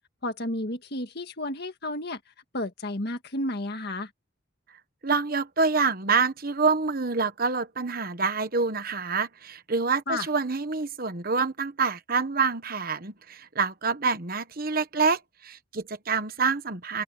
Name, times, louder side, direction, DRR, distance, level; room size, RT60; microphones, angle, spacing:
voice 1, 0.2-2.2 2.5-4.1 10.1-10.3, left 1 dB, 55° left, 1.8 m, -32 dB
voice 2, 5.0-17.0, right 4 dB, 45° right, 1.2 m, -27 dB
open air
head